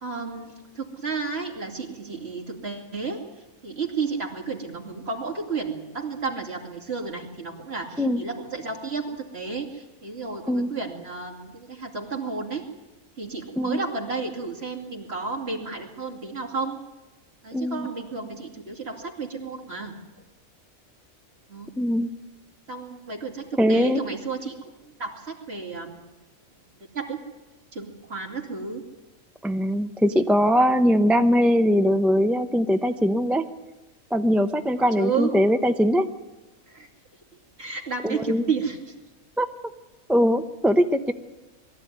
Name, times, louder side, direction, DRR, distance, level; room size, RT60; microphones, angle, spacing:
voice 1, 0.0-3.2 3.6-12.7 13.2-16.8 17.4-20.0 21.5-21.7 22.7-24.6 25.0-26.0 26.9-27.2 27.7-28.8 34.8-35.3 36.7-36.9 37.6-38.9, right 4 dB, 50° right, 1 dB, 2.9 m, -32 dB
voice 2, 17.5-17.9 21.8-22.1 23.6-24.0 29.4-33.5 34.1-36.1 38.0-38.4 39.4-39.5 40.1-41.1, equal, ahead, 6 dB, 0.6 m, -21 dB
22.0 x 14.0 x 9.4 m, 1.1 s
omnidirectional pair, 1.4 m